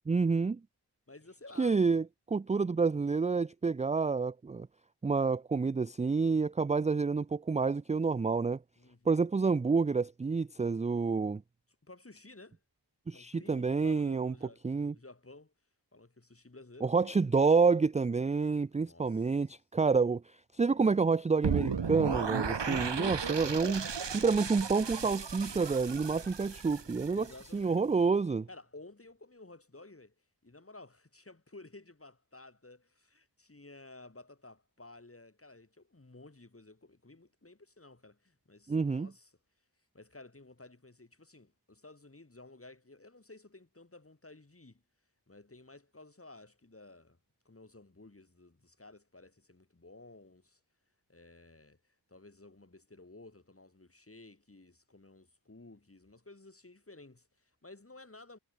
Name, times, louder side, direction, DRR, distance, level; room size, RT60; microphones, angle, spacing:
voice 1, 0.1-0.6 1.6-4.7 5.0-8.6 9.1-11.4 13.1-14.3 14.6-14.9 16.8-20.2 20.6-27.2 27.5-28.5 38.7-39.1, right 4 dB, 20° right, 0.3 m, -28 dB
voice 2, 1.1-1.8 8.8-9.2 11.8-12.6 13.1-15.5 15.9-17.2 18.7-19.5 27.1-27.8 28.5-30.1 30.4-39.3 39.9-44.8 45.3-47.2 47.4-50.6 51.1-58.4, left 2 dB, 30° left, 7.5 m, -54 dB
sound 1, 21.4-27.5, right 6 dB, 85° right, 2.9 m, -35 dB
wide cardioid pair, 85°, 42 cm